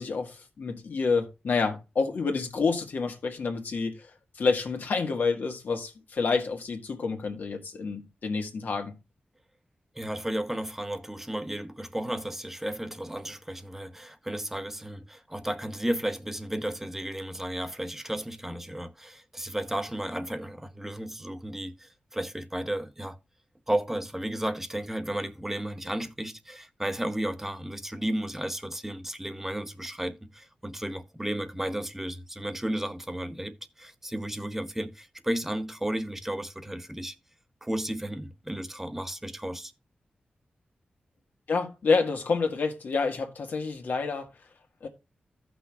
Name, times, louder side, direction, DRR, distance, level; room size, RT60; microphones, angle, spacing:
voice 1, 0.0-9.0 41.5-44.3 44.8-44.9, left 4 dB, 75° left, 1.7 m, -28 dB
voice 2, 9.9-23.2 23.7-37.1 37.6-39.7, right 1 dB, 10° right, 0.9 m, -33 dB
15.0 x 6.1 x 2.3 m
cardioid pair, 75°, 3 cm